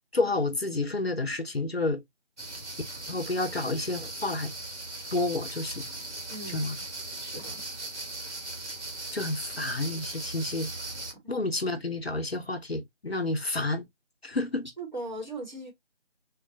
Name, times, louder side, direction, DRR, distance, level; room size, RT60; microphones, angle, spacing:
voice 1, 0.1-2.0 3.1-4.5 5.1-5.8 6.5-6.8 9.1-10.7 11.3-13.9 14.2-14.7, left 2 dB, 55° left, 0.6 m, -30 dB
sound 1, 2.4-11.1, right 2 dB, 65° right, 1.2 m, -39 dB
voice 2, 6.3-6.7 7.2-7.6 14.8-15.7, right 2 dB, 40° right, 1.1 m, -38 dB
3.6 x 2.2 x 2.5 m
figure-of-eight pair, 165°, 37 cm